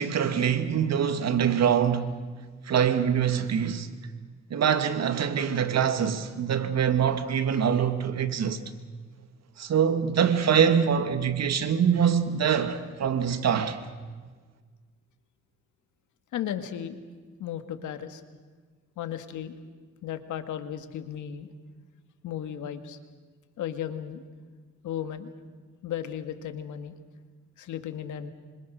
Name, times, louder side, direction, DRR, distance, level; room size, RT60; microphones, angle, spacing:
voice 1, 0.0-2.2 2.7-3.9 4.5-8.6 9.6-13.8, right 8 dB, 60° right, 2.3 m, -24 dB
voice 2, 16.3-17.0 17.4-18.2 19.0-19.5 20.0-21.5 22.2-23.0 23.6-24.2 24.8-25.3 25.8-27.0 27.6-28.3, left 10 dB, 80° left, 2.0 m, -35 dB
26.0 x 26.0 x 6.4 m
cardioid pair, 90°, 30 cm